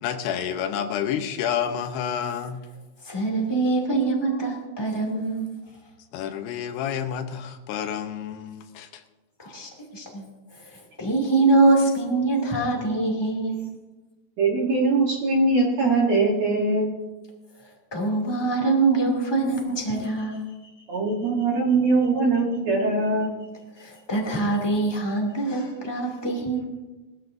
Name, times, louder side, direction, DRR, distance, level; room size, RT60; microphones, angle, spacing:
voice 1, 0.0-2.6 6.1-9.0, left 8 dB, 80° left, 7 dB, 3.0 m, -29 dB
voice 2, 3.0-5.6 9.4-10.2 11.0-13.7 17.9-20.4 23.8-26.6, right 3 dB, 10° left, -1 dB, 1.7 m, -24 dB
voice 3, 14.4-16.9 20.9-23.4, right 3 dB, 60° right, -2 dB, 1.9 m, -22 dB
21.0 x 14.0 x 2.7 m, 1.2 s
omnidirectional pair, 4.8 m